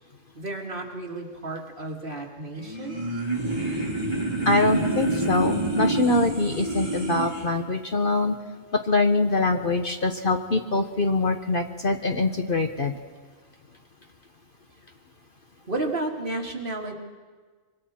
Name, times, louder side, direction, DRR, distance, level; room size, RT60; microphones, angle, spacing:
voice 1, 0.3-3.0 15.7-16.9, right 2 dB, 40° right, 0 dB, 2.3 m, -32 dB
sound 1, 2.6-7.5, right 2 dB, 20° right, 3.6 m, -27 dB
voice 2, 4.4-8.4 8.9-13.0, left 2 dB, 45° left, 5 dB, 1.1 m, -24 dB
25.0 x 24.0 x 4.3 m, 1.5 s
omnidirectional pair, 1.3 m